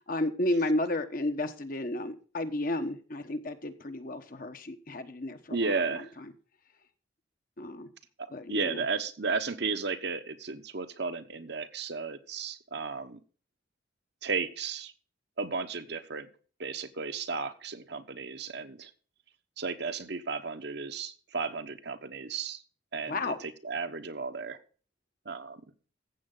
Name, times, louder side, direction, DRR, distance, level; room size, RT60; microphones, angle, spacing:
voice 1, 0.1-5.7 7.6-7.9 8.3-8.8 23.1-23.4, left 1 dB, 50° left, 8 dB, 1.2 m, -32 dB
voice 2, 5.5-6.1 8.2-13.2 14.2-14.9 15.4-16.3 16.6-18.9 19.6-22.6 22.9-24.6 25.2-25.6, right 4 dB, 60° right, 9 dB, 1.1 m, -34 dB
14.5 x 7.8 x 3.9 m, 0.40 s
head